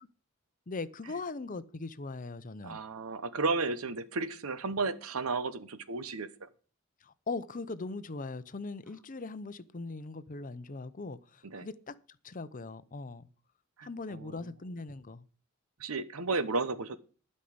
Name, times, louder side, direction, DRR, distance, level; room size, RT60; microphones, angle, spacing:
voice 1, 0.7-2.8 7.0-11.9 12.2-13.3 13.8-15.2, left 3 dB, 40° left, 0.7 m, -40 dB
voice 2, 2.6-6.5 11.4-11.7 13.8-14.5 15.8-17.0, right 3 dB, 85° right, 0.9 m, -33 dB
12.0 x 5.5 x 7.9 m
head